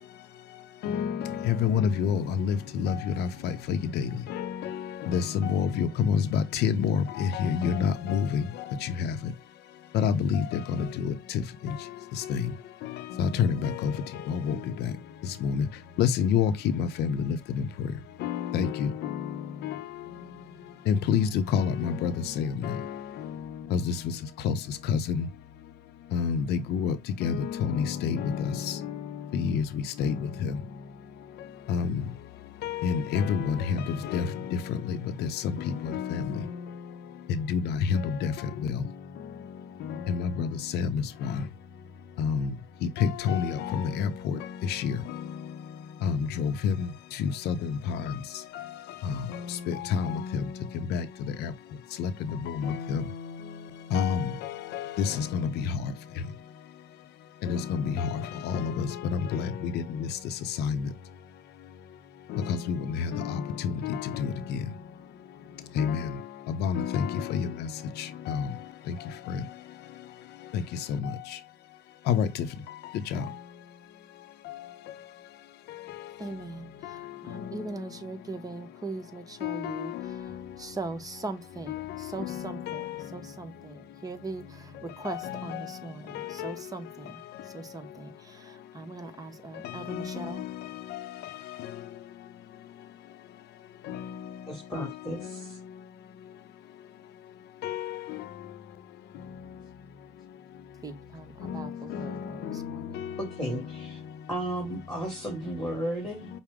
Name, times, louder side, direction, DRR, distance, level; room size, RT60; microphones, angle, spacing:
voice 1, 0.8-3.8 4.3-4.5 5.1-8.4 9.9-10.8 12.3-12.4 13.2-13.9 14.3-14.6 15.4-15.6 16.0-17.4 18.2-18.9 20.9-22.8 23.7-23.8 24.4-24.5 24.9-25.2 26.1-26.9 27.2-28.4 29.3-29.6 30.0-30.2 30.4-30.5 31.7-31.9 32.6-34.2 35.8-36.2 37.5-37.6 37.9-38.3 40.1-40.5 40.7-41.0 42.2-42.4 43.0-44.1 44.7-44.9 46.0-46.9 47.5-47.6 49.7-50.1 50.9-51.0 52.0-52.1 52.6-53.0 53.9-54.3 54.7-55.4 57.4-58.1 58.5-58.9 59.3-59.5 60.6-60.8 62.5-62.8 63.1-63.2 63.8-64.3 65.8-66.0 66.6-67.5 68.3-68.4 72.1-72.3 73.1-73.2 79.4-79.6 82.7-82.8 85.1-85.2 85.5-85.6 86.4-86.5 89.9-90.1 97.6-98.0, left 7 dB, 80° left, 0.6 m, -27 dB
voice 2, 76.2-80.3 80.6-87.2 87.5-90.5 100.8-102.9, right 3 dB, 20° right, 0.8 m, -40 dB
voice 3, 94.5-95.6 103.2-104.0 104.3-106.3, right 1 dB, ahead, 2.2 m, -34 dB
5.8 x 2.1 x 3.5 m
cardioid pair, 110°, 17 cm